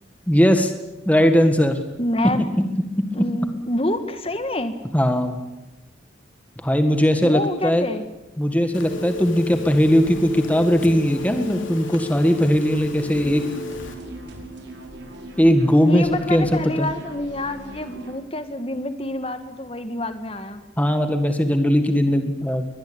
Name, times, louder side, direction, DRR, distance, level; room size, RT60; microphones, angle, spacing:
voice 1, 0.3-0.7 1.1-1.8 4.9-5.4 6.6-7.8 8.4-13.4 15.4-16.9 20.8-22.7, equal, 10° left, 7 dB, 1.8 m, -19 dB
voice 2, 2.0-2.5 3.1-4.8 7.2-8.1 15.9-20.6, left 1 dB, 30° left, 9 dB, 1.7 m, -27 dB
Telephone, 8.7-13.9, left 2 dB, 90° left, 3.8 m, -33 dB
sound 1, 13.1-18.1, right 1 dB, 65° right, 4.9 m, -39 dB
22.5 x 20.0 x 8.8 m, 1.0 s
head